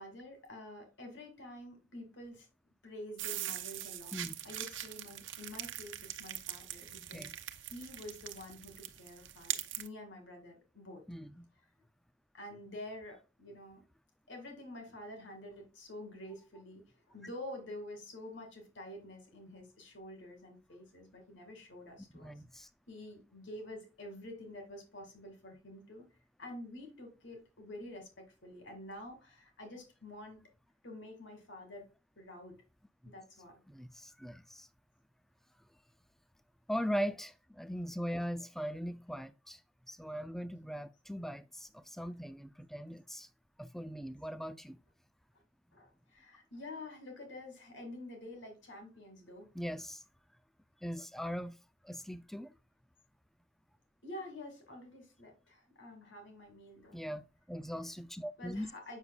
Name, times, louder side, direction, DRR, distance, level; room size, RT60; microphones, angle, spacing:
voice 1, 0.0-2.5 2.8-7.3 7.6-11.0 12.3-13.8 14.3-22.4 22.9-26.1 26.4-30.4 30.8-31.9 32.2-32.6 33.0-33.6 45.7-49.5 54.0-57.0 58.4-59.0, left 1 dB, 85° left, 2.3 m, -48 dB
sound 1, 3.2-9.9, right 12 dB, 90° right, 0.8 m, -42 dB
voice 2, 7.0-7.3 11.1-11.5 22.1-22.7 33.0-33.1 33.7-34.7 36.7-39.6 39.9-43.3 43.6-44.8 49.5-50.0 50.8-51.6 51.8-52.5 56.9-58.7, equal, ahead, 0.3 m, -40 dB
8.1 x 5.9 x 2.3 m
head